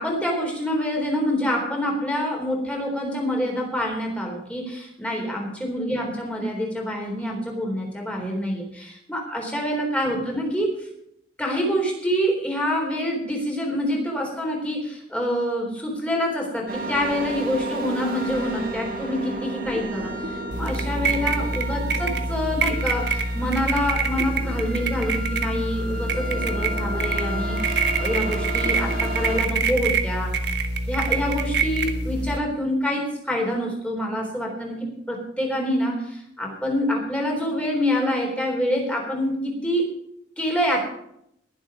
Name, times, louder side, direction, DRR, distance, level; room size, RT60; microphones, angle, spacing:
voice 1, 0.0-10.7 11.4-30.3 30.9-39.9 40.4-40.8, equal, 5° left, -1 dB, 3.8 m, -26 dB
sound 1, 16.7-29.4, right 1 dB, 50° right, 2.2 m, -33 dB
sound 2, 20.5-32.4, right 3 dB, 70° right, 1.3 m, -25 dB
21.0 x 7.5 x 5.0 m, 0.75 s
head